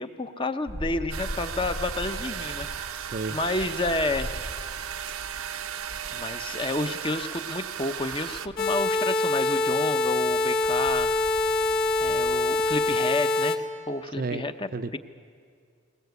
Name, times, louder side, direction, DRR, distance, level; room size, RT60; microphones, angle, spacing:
voice 1, 0.0-2.9 3.3-4.6 6.1-11.2 12.0-15.0, left 2 dB, 25° left, 9 dB, 0.7 m, -30 dB
sound 1, 0.6-13.0, equal, 85° left, 2.3 m, -42 dB
sound 2, 1.1-8.5, right 9 dB, 80° right, 0.8 m, -35 dB
voice 2, 2.9-3.4 14.2-14.5 14.7-15.0, right 3 dB, 40° right, 11 dB, 0.5 m, -32 dB
sound 3, 8.6-13.6, left 2 dB, 45° left, 1.6 m, -24 dB
21.0 x 20.0 x 8.1 m, 2.2 s
head